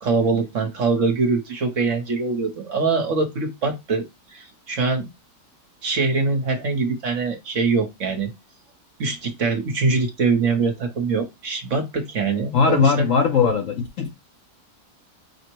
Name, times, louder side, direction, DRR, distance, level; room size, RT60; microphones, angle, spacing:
voice 1, 0.0-4.0 4.3-5.1 5.8-8.3 9.0-13.1, right 4 dB, 55° right, 1.1 m, -23 dB
voice 2, 12.5-14.1, left 6 dB, 65° left, 0.9 m, -19 dB
5.1 x 2.1 x 4.5 m
omnidirectional pair, 1.9 m